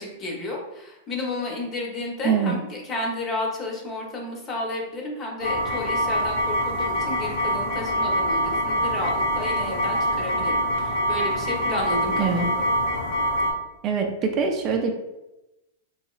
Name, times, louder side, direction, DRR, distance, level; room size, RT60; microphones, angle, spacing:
voice 1, 0.0-12.7, left 2 dB, 25° left, -1 dB, 0.8 m, -32 dB
voice 2, 2.2-2.6 12.2-12.5 13.8-14.9, right 5 dB, 35° right, 3 dB, 0.4 m, -23 dB
sound 1, 5.4-13.5, equal, 65° left, 0.9 m, -25 dB
3.1 x 2.8 x 2.3 m, 0.96 s
hypercardioid pair, 130°, 0 cm